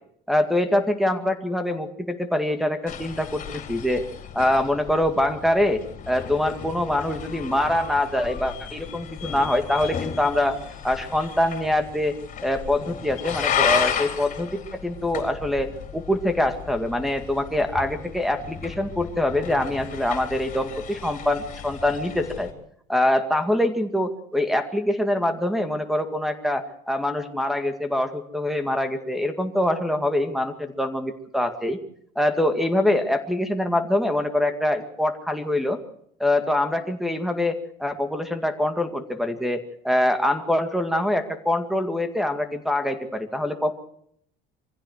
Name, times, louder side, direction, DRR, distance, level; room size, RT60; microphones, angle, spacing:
voice 1, 0.3-4.0 4.3-5.8 6.1-10.6 10.8-12.1 12.4-22.5 22.9-31.8 32.2-35.8 36.2-43.7, left 1 dB, ahead, 8 dB, 2.1 m, -24 dB
sound 1, 2.9-22.5, left 8 dB, 45° left, 4.1 m, -33 dB
24.0 x 15.5 x 7.8 m, 0.70 s
cardioid pair, 115°, 19 cm